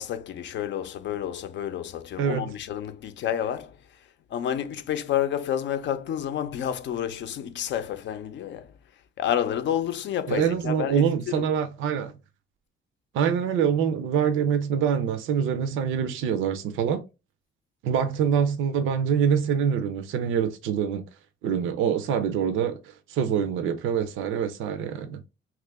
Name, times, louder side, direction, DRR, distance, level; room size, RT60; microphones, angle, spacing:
voice 1, 0.0-4.0 4.3-8.7 9.2-11.5, left 10 dB, 65° left, 0.5 m, -30 dB
voice 2, 2.2-2.5 10.3-12.1 13.1-17.0 17.8-21.0 21.4-25.2, right 7 dB, 90° right, 0.5 m, -25 dB
3.0 x 2.4 x 3.4 m
cardioid pair, 90°, 20 cm